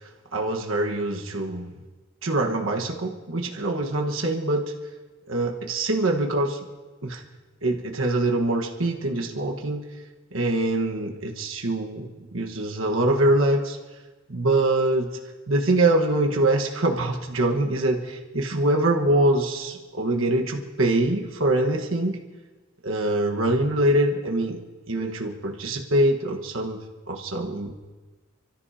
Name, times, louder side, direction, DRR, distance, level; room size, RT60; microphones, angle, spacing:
voice 1, 0.3-1.7 2.2-4.7 5.3-6.6 7.0-7.2 7.6-9.8 10.3-13.8 14.3-15.1 15.5-22.2 22.8-24.6 24.9-26.8 27.1-27.7, right 1 dB, 75° right, 1 dB, 1.4 m, -24 dB
30.0 x 13.5 x 2.8 m, 1.3 s
head